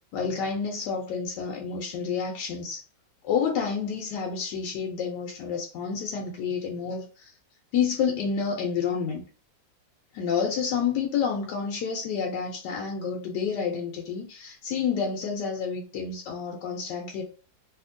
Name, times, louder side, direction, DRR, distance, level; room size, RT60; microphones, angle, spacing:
voice 1, 0.1-2.8 3.2-7.3 7.7-9.2 10.1-17.2, left 6 dB, 75° left, 1 dB, 1.0 m, -29 dB
2.8 x 2.7 x 2.5 m, 0.37 s
omnidirectional pair, 2.1 m